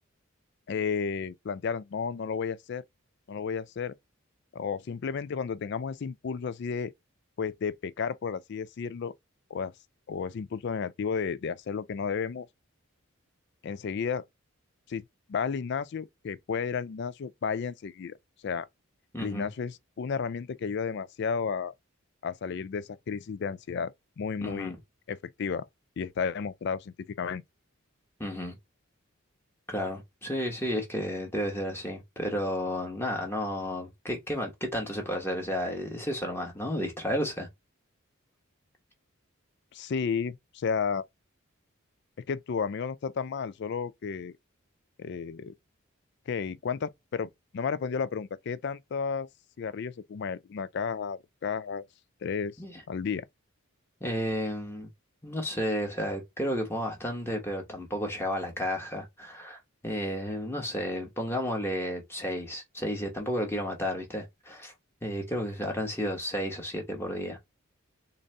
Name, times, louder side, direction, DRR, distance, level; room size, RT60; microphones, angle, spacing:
voice 1, 0.7-2.8 3.3-3.9 4.5-6.9 7.4-9.1 9.5-9.7 10.1-12.5 13.6-14.2 14.9-15.0 15.3-18.1 18.4-18.7 19.2-21.7 22.2-24.7 25.1-25.7 26.0-27.4 39.7-41.0 42.3-44.3 45.0-45.5 46.3-49.3 49.6-51.8 52.2-52.6 52.9-53.3, left 6 dB, 50° left, 0.3 m, -32 dB
voice 2, 19.1-19.5 24.4-24.8 28.2-28.6 29.7-37.5 52.6-52.8 54.0-54.9 55.2-64.7 65.0-67.4, equal, 10° left, 1.0 m, -32 dB
3.9 x 2.6 x 3.1 m
head